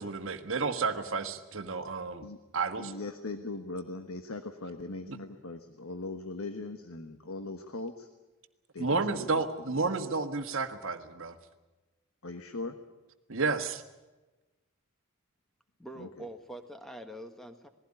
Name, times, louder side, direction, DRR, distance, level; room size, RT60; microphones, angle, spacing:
voice 1, 0.0-2.3 2.5-2.9 5.1-5.2 8.8-11.4 13.3-13.8, right 4 dB, 60° right, 8 dB, 1.5 m, -31 dB
voice 2, 2.8-8.1 8.7-9.4 9.7-9.8 12.2-12.8 16.0-16.3, left 2 dB, 70° left, 8 dB, 1.3 m, -40 dB
voice 3, 15.8-17.7, right 1 dB, ahead, 6 dB, 1.5 m, -44 dB
20.0 x 16.0 x 9.8 m, 1.1 s
head